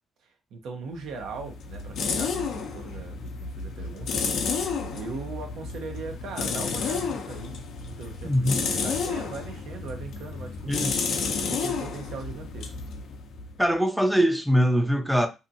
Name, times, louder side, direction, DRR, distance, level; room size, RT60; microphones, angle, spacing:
voice 1, 0.2-4.2 4.9-7.6 7.8-11.0 11.4-12.7, right 4 dB, 80° right, 0.7 m, -39 dB
sound 1, 1.0-13.7, left 5 dB, 75° left, 0.5 m, -31 dB
voice 2, 8.2-8.6 10.7-11.0 13.6-15.3, equal, ahead, 0.4 m, -22 dB
2.7 x 2.5 x 2.6 m
cardioid pair, 90°, 0 cm